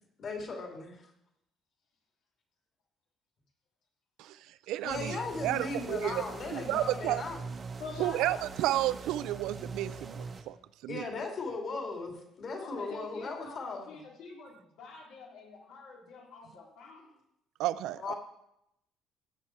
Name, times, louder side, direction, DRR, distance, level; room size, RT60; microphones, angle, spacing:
voice 1, 0.2-1.0 4.8-7.4 10.9-14.0 18.0-18.1, left 3 dB, 40° left, 2 dB, 2.6 m, -37 dB
voice 2, 4.7-5.2 5.4-6.2 6.5-7.2 8.0-10.5 10.8-11.0 17.6-18.1, right 14 dB, 80° right, 16 dB, 0.4 m, -31 dB
sound 1, 4.9-10.4, right 4 dB, 25° right, 0.9 m, -42 dB
voice 3, 7.8-8.6 12.6-17.2, left 4 dB, 85° left, -2 dB, 3.7 m, -47 dB
16.5 x 8.2 x 4.4 m, 0.82 s
cardioid pair, 155°, 0 cm